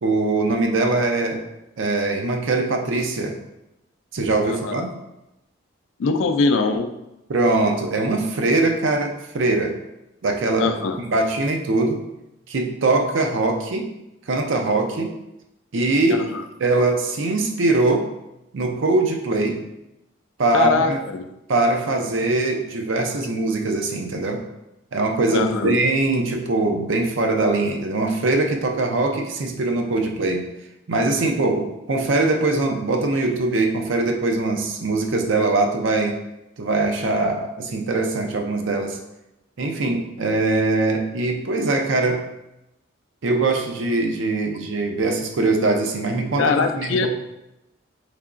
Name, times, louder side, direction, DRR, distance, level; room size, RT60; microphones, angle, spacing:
voice 1, 0.0-1.4 1.8-3.4 4.1-4.9 7.3-9.8 10.2-12.0 12.5-13.9 14.3-15.1 15.7-16.2 16.6-18.1 18.5-19.6 20.4-21.0 21.5-24.4 24.9-30.5 30.9-36.1 36.6-39.0 39.6-42.2 43.2-47.1, right 2 dB, 70° right, 3 dB, 0.5 m, -22 dB
voice 2, 4.4-4.8 6.0-6.9 10.6-11.0 16.1-16.4 20.5-21.3 25.3-25.8 46.4-47.1, left 4 dB, 70° left, 6 dB, 0.3 m, -22 dB
3.7 x 3.4 x 2.4 m, 0.91 s
head